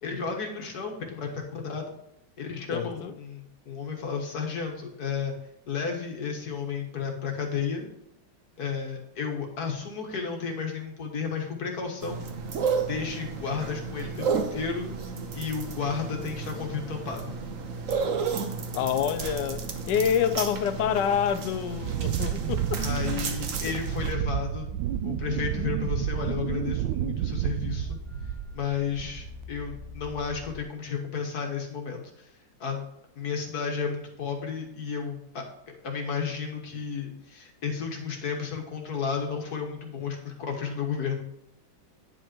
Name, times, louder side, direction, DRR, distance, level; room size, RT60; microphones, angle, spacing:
voice 1, 0.0-1.9 2.4-5.3 5.7-7.9 8.6-12.2 12.9-14.9 15.3-17.3 22.8-24.7 25.0-28.0 28.5-32.3 32.6-32.8 33.2-35.4 35.8-41.2, left 6 dB, 60° left, 1.9 m, -32 dB
voice 2, 2.7-3.1 18.7-22.8 23.6-23.7, left 8 dB, 75° left, 1.2 m, -27 dB
sound 1, 12.0-24.1, right 5 dB, 55° right, 1.2 m, -33 dB
Wind, 21.8-28.7 29.0-29.4, right 13 dB, 90° right, 1.3 m, -31 dB
sound 2, 22.3-30.6, left 3 dB, 15° right, 1.9 m, -44 dB
9.7 x 5.5 x 4.4 m
omnidirectional pair, 1.9 m